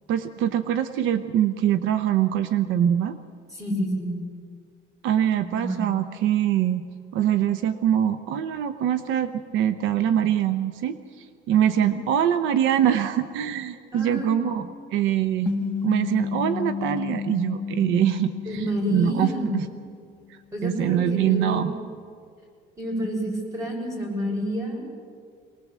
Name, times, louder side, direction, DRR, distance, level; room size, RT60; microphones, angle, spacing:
voice 1, 0.1-3.2 5.0-6.8 7.1-14.6 14.9-15.5 15.8-18.6 18.9-19.7 20.3-21.7, right 10 dB, 75° right, 11 dB, 0.9 m, -23 dB
voice 2, 3.5-4.1 5.5-5.9 11.8-11.9 13.9-14.6 18.4-19.5 20.5-21.8 22.8-24.8, equal, 15° right, -1 dB, 6.2 m, -29 dB
sound 1, 15.5-20.1, left 6 dB, 5° left, 1.7 m, -32 dB
23.5 x 19.5 x 7.6 m, 2.2 s
cardioid pair, 160°, 20 cm